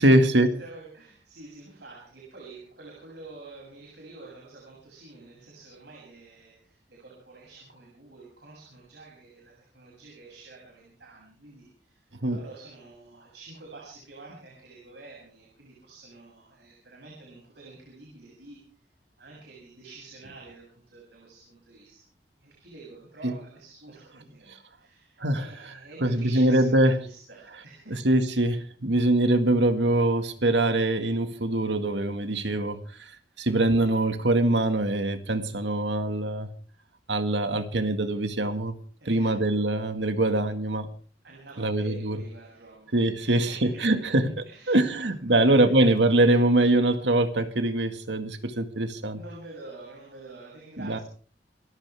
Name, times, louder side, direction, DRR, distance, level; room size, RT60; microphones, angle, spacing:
voice 1, 0.0-0.6 12.2-12.4 23.2-23.3 25.2-27.0 27.9-32.8 33.4-36.5 37.1-38.7 39.1-40.9 41.6-42.2 42.9-49.2 50.8-51.0, right 1 dB, 85° right, 8 dB, 2.0 m, -23 dB
voice 2, 0.6-18.8 19.2-22.0 22.4-28.0 39.0-39.4 41.2-44.1 44.4-45.7 49.1-51.0, right 3 dB, 70° right, -2 dB, 7.4 m, -48 dB
28.0 x 14.5 x 3.5 m, 0.42 s
head